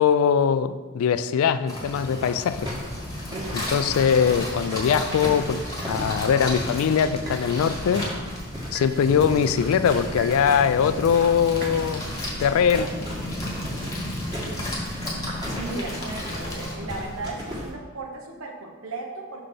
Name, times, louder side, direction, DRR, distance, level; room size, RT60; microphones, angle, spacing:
voice 1, 0.0-2.7 3.5-8.1 8.7-12.1 12.4-12.9, left 7 dB, 80° left, 13 dB, 0.3 m, -22 dB
sound 1, 1.7-16.7, left 1 dB, 15° left, 1.2 m, -35 dB
sound 2, 2.5-17.7, equal, 20° right, 1.3 m, -34 dB
voice 2, 3.2-3.7 15.4-19.4, right 2 dB, 80° right, 1 dB, 1.0 m, -36 dB
sound 3, 5.8-6.0 7.3-7.5 8.7-9.0 10.2-10.5 11.6-11.8, right 2 dB, 45° right, 0.7 m, -39 dB
5.6 x 4.0 x 5.0 m, 1.4 s
head